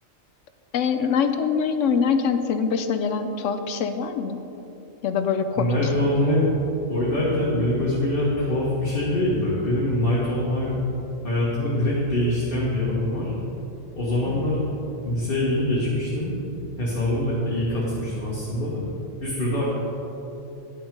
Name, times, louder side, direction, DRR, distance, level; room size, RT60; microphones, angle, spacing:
voice 1, 0.7-4.4 5.0-5.8 14.3-14.4, left 6 dB, 70° left, 9 dB, 0.9 m, -24 dB
voice 2, 5.6-6.5 6.9-10.8 11.2-13.3 14.0-14.6 15.0-16.3 16.8-18.8 19.2-19.6, left 1 dB, 45° left, -7 dB, 1.6 m, -24 dB
10.5 x 6.1 x 5.2 m, 3.0 s
omnidirectional pair, 1.4 m